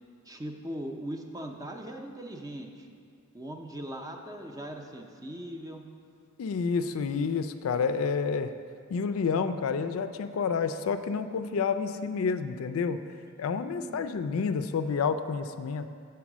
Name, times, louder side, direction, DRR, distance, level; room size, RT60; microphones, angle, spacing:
voice 1, 0.3-2.9 3.3-5.8 13.4-13.5 13.7-14.1, right 1 dB, 15° right, 3 dB, 0.5 m, -40 dB
voice 2, 6.4-8.5 8.9-13.0 13.4-15.9, left 5 dB, 80° left, 10 dB, 0.4 m, -29 dB
7.2 x 4.6 x 6.0 m, 2.2 s
head